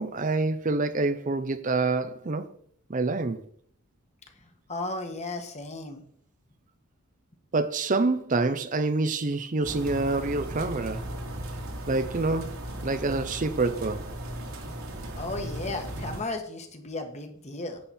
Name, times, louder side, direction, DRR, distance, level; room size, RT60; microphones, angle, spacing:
voice 1, 0.0-2.5 2.9-3.4 7.5-11.0 11.9-14.0, right 3 dB, 35° right, 0.6 m, -27 dB
voice 2, 4.7-6.0 15.2-17.8, left 2 dB, 30° left, 1.5 m, -34 dB
sound 1, 9.6-16.2, right 1 dB, 70° right, 2.1 m, -37 dB
11.0 x 8.7 x 4.3 m
head